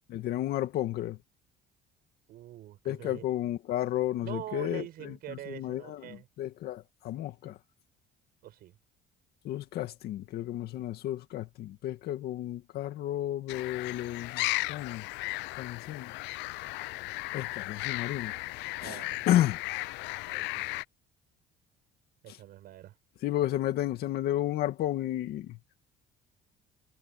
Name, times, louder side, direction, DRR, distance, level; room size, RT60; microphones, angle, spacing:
voice 1, 0.1-1.2 2.9-7.6 9.4-15.1 15.6-16.1 17.3-18.3 18.8-19.0 19.3-19.6 23.2-25.6, left 13 dB, 60° left, 2.2 m, -32 dB
voice 2, 2.3-3.2 4.2-6.3 8.4-8.7 15.7-15.8 18.8-19.3 20.2-20.6 22.2-23.0, right 13 dB, 60° right, 5.7 m, -44 dB
sound 1, 13.5-20.8, left 21 dB, 85° left, 0.5 m, -36 dB
cardioid pair, 155°, 18 cm